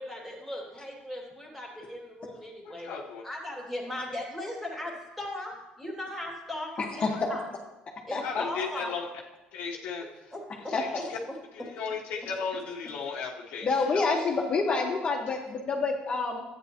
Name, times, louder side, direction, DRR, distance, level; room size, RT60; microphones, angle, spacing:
voice 1, 0.0-2.9 3.2-4.9 5.2-5.5 5.8-7.0 7.3-7.4 8.1-8.9 10.3-10.4 10.6-10.7 14.1-14.2, left 1 dB, ahead, -2 dB, 2.7 m, -37 dB
voice 2, 2.6-3.5 7.1-7.2 8.2-9.1 9.5-11.2 11.5-14.2, left 5 dB, 85° left, 0 dB, 1.2 m, -36 dB
voice 3, 6.8-7.4 8.1-8.4 10.7-11.1 13.6-16.4, left 4 dB, 35° left, 0 dB, 1.5 m, -28 dB
12.0 x 9.1 x 3.0 m, 0.99 s
cardioid pair, 125°, 3 cm